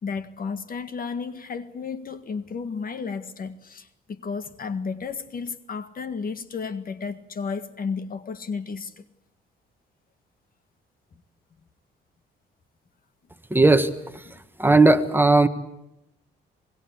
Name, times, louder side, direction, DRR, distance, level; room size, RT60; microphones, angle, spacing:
voice 1, 0.0-9.0, left 5 dB, 45° left, 1.7 m, -33 dB
voice 2, 13.5-14.3 14.6-15.5, right 2 dB, 10° right, 1.6 m, -17 dB
25.0 x 21.0 x 8.4 m
cardioid pair, 90°, 20 cm